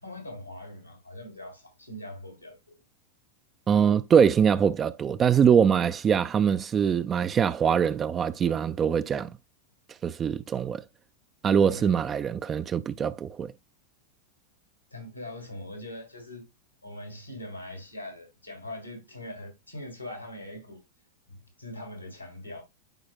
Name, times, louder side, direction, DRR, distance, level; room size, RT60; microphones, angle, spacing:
voice 1, 0.0-2.7 11.7-12.0 14.9-16.5 16.8-20.8 21.3-22.6, left 1 dB, 90° left, 3.2 m, -42 dB
voice 2, 3.7-9.3 10.0-10.8 11.4-13.5, right 7 dB, 25° right, 0.4 m, -23 dB
13.0 x 4.7 x 2.3 m
figure-of-eight pair, 90°, 0 cm